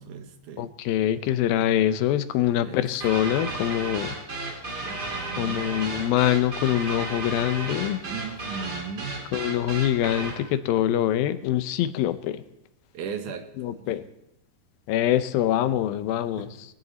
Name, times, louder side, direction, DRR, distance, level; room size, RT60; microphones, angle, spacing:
voice 1, 0.0-0.7 2.6-2.9 4.8-5.8 8.1-9.3 12.9-13.9 16.4-16.5, right 7 dB, 65° right, 6 dB, 2.5 m, -37 dB
voice 2, 0.6-4.1 5.4-8.0 9.3-12.4 13.6-14.0 14.9-16.5, left 12 dB, 85° left, 11 dB, 2.5 m, -24 dB
sound 1, 3.0-10.4, right 2 dB, 30° right, 2.7 m, -33 dB
20.0 x 15.0 x 4.1 m, 0.87 s
omnidirectional pair, 4.2 m